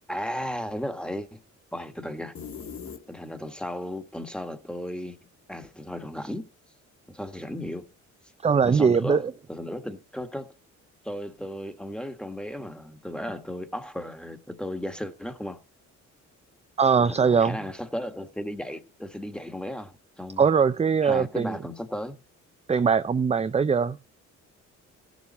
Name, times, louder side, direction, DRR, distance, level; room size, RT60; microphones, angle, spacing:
voice 1, 0.1-1.4 1.7-2.3 3.1-5.2 5.5-6.5 7.1-7.8 8.6-10.5 11.0-15.6 17.0-20.4 21.0-22.2, equal, 5° left, 1.5 m, -35 dB
sound 1, 2.3-3.6, left 6 dB, 45° left, 1.9 m, -40 dB
voice 2, 8.4-9.3 16.8-17.6 20.4-21.6 22.7-24.0, right 6 dB, 20° right, 0.5 m, -21 dB
15.5 x 7.2 x 4.1 m
cardioid pair, 90°, 30 cm